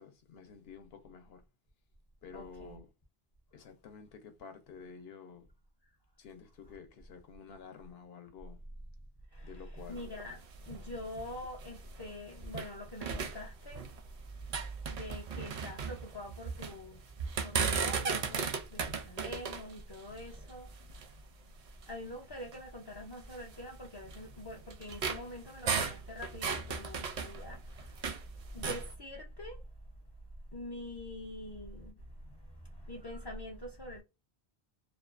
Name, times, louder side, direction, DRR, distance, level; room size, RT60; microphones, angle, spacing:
voice 1, 0.0-1.4 2.2-2.9 3.5-5.5 6.2-8.6 9.4-10.0, left 6 dB, 75° left, 0.8 m, -51 dB
voice 2, 2.3-2.8 9.3-10.4 10.7-13.9 14.5-17.0 17.4-20.7 21.9-29.6 30.5-34.0, left 1 dB, 40° left, 0.4 m, -45 dB
sound 1, 9.8-12.7 13.0-14.1 14.4-16.8 17.2-21.2 21.8-21.9 22.4-22.6 23.3-28.2 28.5-28.9, right 5 dB, 55° right, 0.5 m, -36 dB
2.5 x 2.2 x 2.3 m
omnidirectional pair, 1.0 m